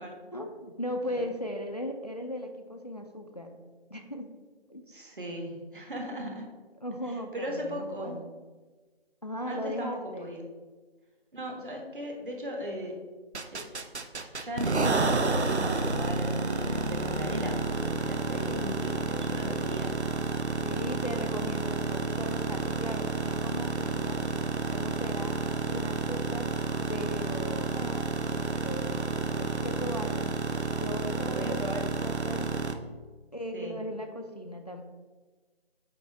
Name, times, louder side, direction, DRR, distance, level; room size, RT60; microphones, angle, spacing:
voice 1, 0.3-3.6 3.9-4.3 4.7-4.8 6.2-6.4 6.8-8.3 9.2-10.3 20.5-24.2 24.7-25.4 25.7-26.5 26.9-30.3 30.7-32.5 33.3-34.8, equal, 40° left, 5 dB, 0.5 m, -37 dB
voice 2, 4.9-6.5 7.3-8.2 9.5-9.9 10.2-10.4 11.3-13.0 13.5-13.7 14.3-20.1 31.2-31.8 33.5-33.8, equal, 50° right, 1 dB, 1.4 m, -37 dB
sound 1, 13.3-32.7, right 3 dB, 90° right, 0.8 m, -30 dB
8.4 x 2.9 x 4.5 m, 1.3 s
figure-of-eight pair, 170°, 32 cm